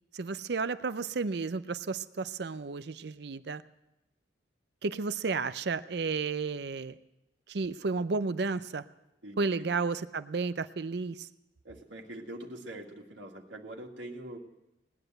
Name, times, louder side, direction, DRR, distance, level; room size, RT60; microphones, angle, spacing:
voice 1, 0.1-3.6 4.8-6.9 7.5-8.8 9.4-11.3, right 4 dB, 60° right, 13 dB, 0.5 m, -32 dB
voice 2, 9.2-9.7 11.6-14.4, right 1 dB, 75° right, 0 dB, 2.0 m, -44 dB
18.5 x 9.9 x 7.9 m, 0.92 s
head